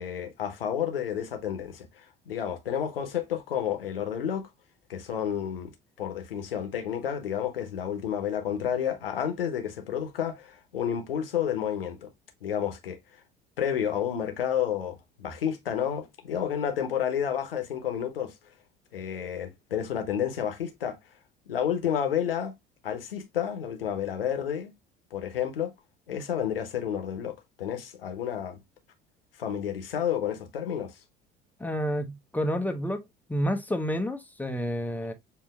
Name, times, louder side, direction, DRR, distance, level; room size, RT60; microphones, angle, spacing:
voice 1, 0.0-4.5 4.9-5.7 6.0-12.1 12.4-13.0 13.6-18.3 18.9-21.0 21.5-22.5 22.8-24.7 25.1-25.7 26.1-28.6 29.4-31.0, left 9 dB, 75° left, 1.0 m, -30 dB
voice 2, 31.6-33.0 33.3-35.1, equal, 5° left, 0.7 m, -29 dB
6.9 x 2.7 x 2.3 m
figure-of-eight pair, 65°, 29 cm